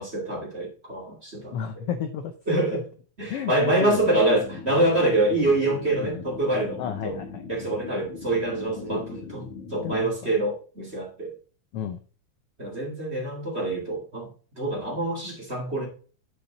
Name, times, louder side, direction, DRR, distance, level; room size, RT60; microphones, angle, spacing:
voice 1, 0.0-1.6 2.5-2.8 3.2-7.2 7.5-11.3 12.6-14.3 14.6-15.9, right 1 dB, 25° right, -2 dB, 2.5 m, -25 dB
voice 2, 1.5-2.8 3.3-4.1 5.3-5.4 6.0-6.2 6.8-7.6 8.7-9.3 9.8-10.3 11.7-12.0, left 8 dB, 70° left, 8 dB, 1.4 m, -33 dB
sound 1, 4.0-10.0, left 5 dB, 90° left, 3.9 m, -40 dB
10.5 x 5.1 x 4.0 m, 0.39 s
omnidirectional pair, 3.3 m